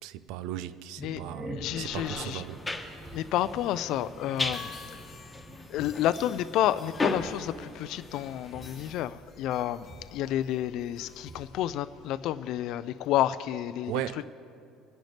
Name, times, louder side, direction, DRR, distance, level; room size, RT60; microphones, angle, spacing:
voice 1, 0.0-3.2 13.9-14.3, right 11 dB, 80° right, 0.5 m, -37 dB
sound 1, 1.0-12.1, right 1 dB, 25° right, 2.0 m, -47 dB
voice 2, 1.6-2.4 3.1-4.7 5.7-13.9, left 12 dB, 65° left, 0.4 m, -30 dB
sound 2, 1.9-8.9, left 2 dB, 10° left, 1.2 m, -37 dB
sound 3, 2.6-12.1, left 5 dB, 30° left, 1.2 m, -51 dB
25.0 x 10.5 x 3.3 m
cardioid pair, 120°, 0 cm